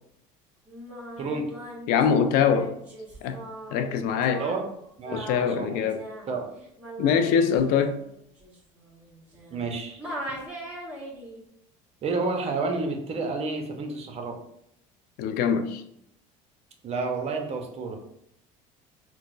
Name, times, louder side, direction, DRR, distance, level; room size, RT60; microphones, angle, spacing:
Singing, 0.7-9.7 10.0-11.4, right 1 dB, 10° right, 1.3 m, -40 dB
voice 1, 1.9-2.7 3.2-3.4 3.7-4.5 5.1-6.1 7.0-8.0 15.2-15.8, left 7 dB, 65° left, 0.4 m, -23 dB
voice 2, 5.0-5.8 6.3-6.5 9.5-10.0 12.0-14.4 16.8-18.0, right 3 dB, 40° right, 0.7 m, -30 dB
4.3 x 2.0 x 2.4 m
supercardioid pair, 105°, 16 cm